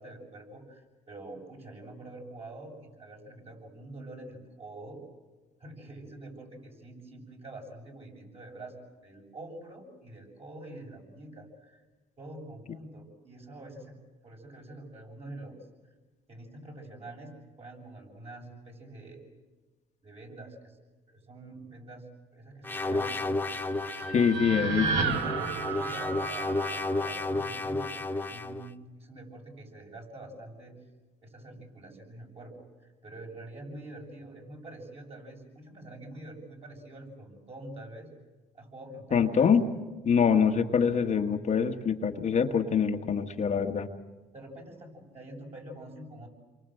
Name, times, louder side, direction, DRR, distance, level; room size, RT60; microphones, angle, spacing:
voice 1, 0.0-5.0 5.6-11.8 12.2-14.0 14.2-15.6 16.3-19.3 20.0-20.8 21.1-22.0 22.3-23.5 25.7-30.7 31.2-38.1 38.5-39.5 44.3-46.3, right 2 dB, 35° right, 1 dB, 7.6 m, -46 dB
sound 1, 22.6-24.3 25.0-28.7, left 2 dB, 10° left, 1.1 m, -32 dB
sound 2, 23.3-27.5, right 4 dB, 90° right, 2.3 m, -33 dB
voice 2, 24.1-25.2 39.1-39.6 40.0-43.9, left 6 dB, 45° left, 4 dB, 1.6 m, -25 dB
29.0 x 23.5 x 7.9 m, 1.2 s
cardioid pair, 110°, 17 cm